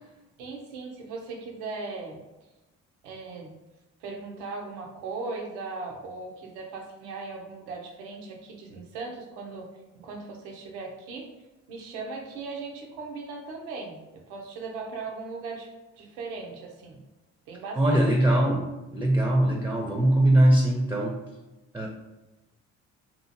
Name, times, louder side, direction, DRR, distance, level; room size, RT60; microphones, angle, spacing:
voice 1, 0.4-2.2 3.0-3.5 4.0-9.7 9.9-11.3 11.7-17.0 17.5-18.1, right 3 dB, 90° right, 1 dB, 0.6 m, -38 dB
voice 2, 17.8-18.7 18.9-21.2 21.7-21.9, right 1 dB, 5° right, 0 dB, 0.4 m, -21 dB
2.7 x 2.4 x 2.6 m, 1.0 s
hypercardioid pair, 50°, 36 cm